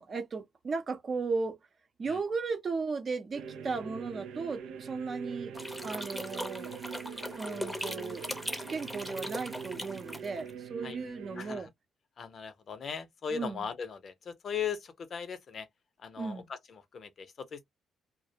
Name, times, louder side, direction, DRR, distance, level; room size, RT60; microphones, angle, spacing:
voice 1, 0.0-1.6 2.0-5.6 5.8-6.7 7.3-11.7 13.3-13.7 16.2-16.5, right 4 dB, 45° right, 0.6 m, -36 dB
sound 1, 3.3-11.6, right 6 dB, 85° right, 0.4 m, -43 dB
sound 2, 5.5-10.5, left 1 dB, 5° left, 0.7 m, -40 dB
voice 2, 12.2-15.7 16.0-16.6 16.9-17.6, left 7 dB, 50° left, 0.6 m, -38 dB
2.3 x 2.0 x 2.8 m
cardioid pair, 90°, 0 cm